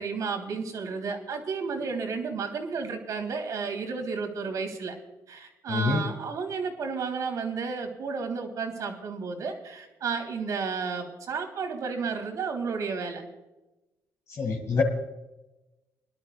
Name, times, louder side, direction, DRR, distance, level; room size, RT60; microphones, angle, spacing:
voice 1, 0.0-4.9 5.3-13.2, right 5 dB, 60° right, 3 dB, 3.2 m, -32 dB
voice 2, 5.7-6.1 14.3-14.8, left 4 dB, 45° left, -1 dB, 2.1 m, -26 dB
24.5 x 11.5 x 2.3 m, 1.0 s
cardioid pair, 120°, 6 cm